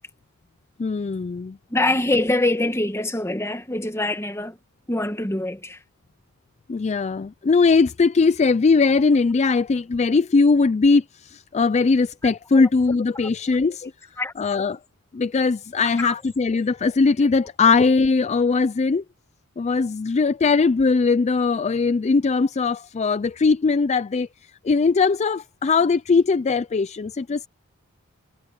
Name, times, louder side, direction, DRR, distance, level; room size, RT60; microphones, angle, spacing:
voice 1, 0.8-1.6 6.7-13.9 14.4-14.8 15.1-19.0 19.6-27.5, left 4 dB, 30° left, 0.4 m, -20 dB
voice 2, 1.7-4.6 4.9-5.8 12.5-12.7 14.2-14.3 16.0-16.1, left 2 dB, 10° left, 1.5 m, -24 dB
head